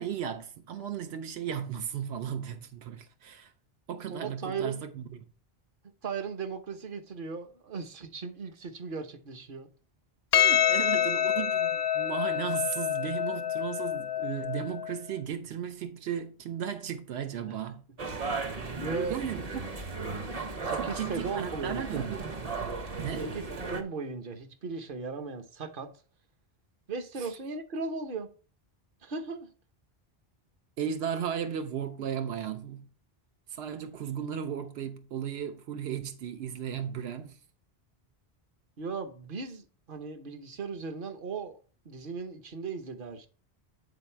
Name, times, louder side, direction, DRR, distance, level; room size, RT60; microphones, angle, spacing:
voice 1, 0.0-3.5 3.9-5.3 10.3-17.9 18.7-18.8 19.1-19.7 20.7-22.2 23.0-23.3 27.2-27.3 30.8-32.9 33.5-37.4, right 8 dB, 85° right, 0.9 m, -35 dB
voice 2, 4.1-4.8 6.0-9.7 17.5-17.6 18.8-19.2 20.6-22.1 23.2-23.4 23.7-25.9 26.9-28.3 29.0-29.5 38.8-41.6 41.8-43.3, right 4 dB, 60° right, 1.1 m, -37 dB
Percussion, 10.3-15.0, left 10 dB, 80° left, 0.9 m, -27 dB
sound 1, 18.0-23.8, right 3 dB, 40° right, 0.8 m, -35 dB
9.0 x 4.0 x 4.4 m
omnidirectional pair, 1.0 m